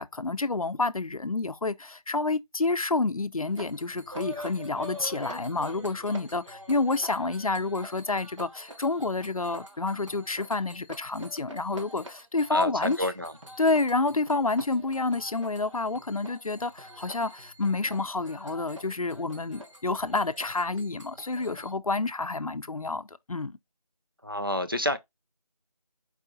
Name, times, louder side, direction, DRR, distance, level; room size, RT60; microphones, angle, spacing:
voice 1, 0.0-13.1 13.6-23.6, left 3 dB, 65° left, 0.5 m, -29 dB
sound 1, 3.5-21.7, equal, 50° right, 1.0 m, -46 dB
voice 2, 12.5-13.3 24.2-25.0, left 1 dB, 35° right, 0.4 m, -29 dB
4.7 x 2.6 x 4.0 m
figure-of-eight pair, 175°, 20 cm